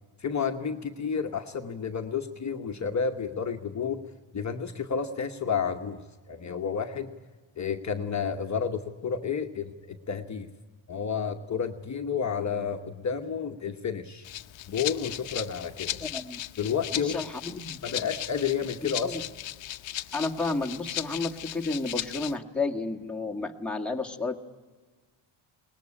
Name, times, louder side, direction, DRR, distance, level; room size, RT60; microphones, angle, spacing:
voice 1, 0.2-4.0 4.3-7.1 7.6-10.5 10.9-14.3 14.7-16.0 16.6-17.2 17.8-19.2, left 6 dB, 35° left, 4 dB, 1.1 m, -31 dB
Rattle (instrument), 14.2-22.4, left 13 dB, 65° left, 0.9 m, -37 dB
voice 2, 16.0-16.4 16.9-17.8 18.8-19.2 20.1-24.3, left 3 dB, ahead, 1 dB, 1.6 m, -32 dB
21.0 x 19.5 x 9.8 m, 1.4 s
cardioid pair, 130°, 48 cm